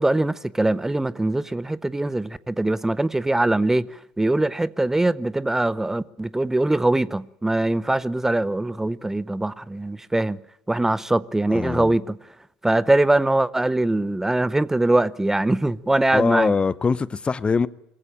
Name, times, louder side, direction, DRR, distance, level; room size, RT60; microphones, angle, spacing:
voice 1, 0.0-3.9 4.2-10.4 10.7-12.0 12.6-16.5, right 2 dB, 10° right, 0.7 m, -22 dB
voice 2, 11.5-11.9 16.1-17.7, left 5 dB, 25° left, 0.7 m, -22 dB
22.5 x 15.5 x 8.8 m
hypercardioid pair, 65°, 4 cm